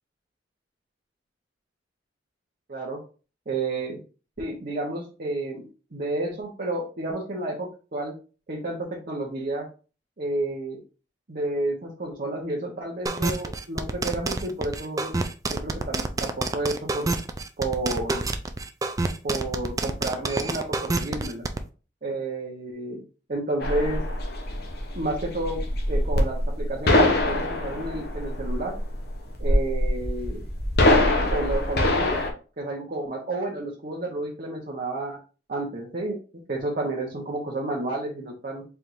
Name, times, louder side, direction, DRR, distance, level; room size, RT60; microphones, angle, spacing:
voice 1, 2.7-3.0 3.5-4.0 4.4-8.1 8.5-9.7 10.2-10.8 11.3-15.1 15.5-17.1 17.6-18.2 19.2-21.4 22.0-23.0 23.3-24.0 24.9-25.6 25.9-28.8 29.4-30.4 31.3-32.3 32.6-35.2 35.5-36.2 36.5-38.6, right 2 dB, 50° right, -3 dB, 1.0 m, -31 dB
sound 1, 13.1-21.6, right 3 dB, 20° right, 0.4 m, -27 dB
sound 2, 23.6-32.3, left 1 dB, 60° left, 0.9 m, -23 dB
4.5 x 3.4 x 2.6 m, 0.35 s
head